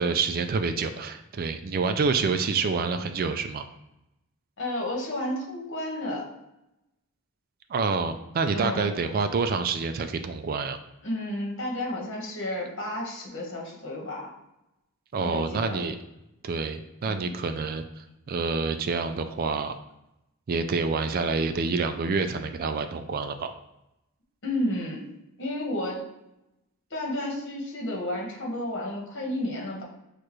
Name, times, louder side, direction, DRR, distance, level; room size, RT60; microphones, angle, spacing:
voice 1, 0.0-3.6 7.7-10.8 15.1-15.9 16.4-19.8 20.5-23.5, right 4 dB, 40° right, 8 dB, 0.3 m, -27 dB
voice 2, 4.6-6.2 8.5-8.9 11.0-14.3 15.2-15.8 17.0-17.3 24.4-25.1 25.4-26.0 26.9-29.8, left 1 dB, 55° left, -2 dB, 1.4 m, -32 dB
6.4 x 2.5 x 3.1 m, 0.89 s
head